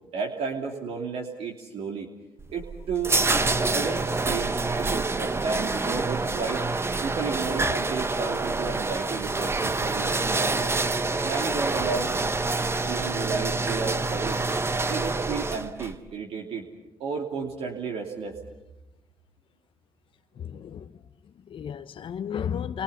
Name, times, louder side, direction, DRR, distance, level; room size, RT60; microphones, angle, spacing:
voice 1, 0.1-2.1 2.5-3.2 3.6-6.6 7.0-10.8 11.2-12.2 12.8-14.4 14.9-16.7 17.0-18.4, right 5 dB, 70° right, 2.9 m, -32 dB
sound 1, 2.4-15.9, right 3 dB, 25° right, 1.1 m, -27 dB
voice 2, 20.3-22.8, left 8 dB, 55° left, 0.9 m, -34 dB
28.5 x 23.5 x 5.7 m
supercardioid pair, 60°, 10 cm